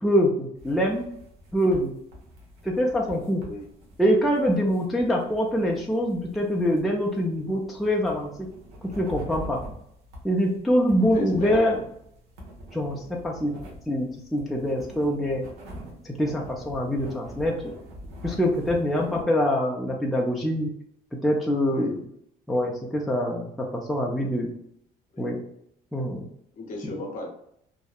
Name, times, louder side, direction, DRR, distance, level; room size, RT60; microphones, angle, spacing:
voice 1, 0.0-1.1 1.5-1.9 2.6-3.4 4.0-8.3 9.0-9.6 10.2-11.8 12.7-13.5 13.9-15.4 16.0-17.7 18.2-20.7 21.2-22.1 22.5-24.5 25.2-25.4 25.9-26.3, equal, ahead, -2 dB, 0.4 m, -24 dB
sound 1, 0.6-19.2, equal, 90° right, 0.9 m, -44 dB
voice 2, 11.0-11.8 18.9-19.1 21.7-21.9 25.1-25.4 26.5-27.3, left 2 dB, 50° left, 1 dB, 0.8 m, -36 dB
2.7 x 2.0 x 2.3 m, 0.72 s
cardioid pair, 110°, 17 cm